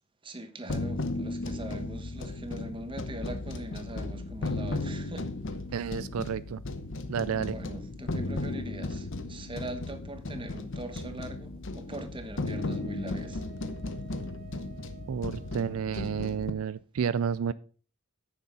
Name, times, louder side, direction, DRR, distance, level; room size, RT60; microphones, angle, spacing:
voice 1, 0.2-5.6 7.5-13.4, right 1 dB, 25° right, 1.2 m, -41 dB
sound 1, 0.7-16.5, left 2 dB, 60° left, 0.9 m, -35 dB
voice 2, 5.7-6.6 7.1-7.5 15.1-17.5, right 7 dB, 75° right, 0.4 m, -31 dB
Wind instrument woodwind instrument, 12.4-16.0, right 10 dB, 50° right, 2.2 m, -52 dB
9.5 x 6.8 x 5.3 m
head